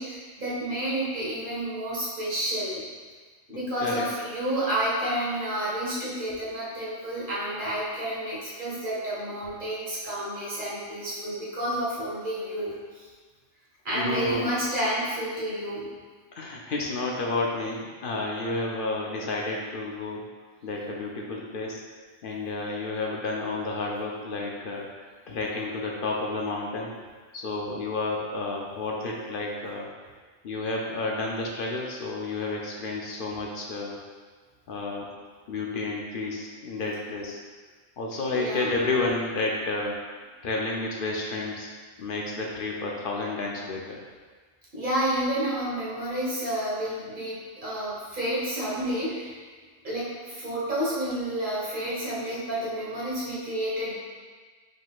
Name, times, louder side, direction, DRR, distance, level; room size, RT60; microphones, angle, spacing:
voice 1, 0.0-2.8 3.5-13.1 13.8-15.9 38.3-38.8 44.7-49.4 49.8-53.9, right 1 dB, 40° right, -8 dB, 1.5 m, -30 dB
voice 2, 3.5-4.1 13.9-14.6 16.3-20.2 20.6-21.8 22.2-27.0 27.3-29.9 30.4-34.0 34.7-35.1 35.5-37.4 38.0-40.0 40.4-41.7 42.0-44.0, left 3 dB, 55° left, -1 dB, 0.6 m, -31 dB
5.2 x 3.8 x 2.4 m, 1.4 s
omnidirectional pair, 1.3 m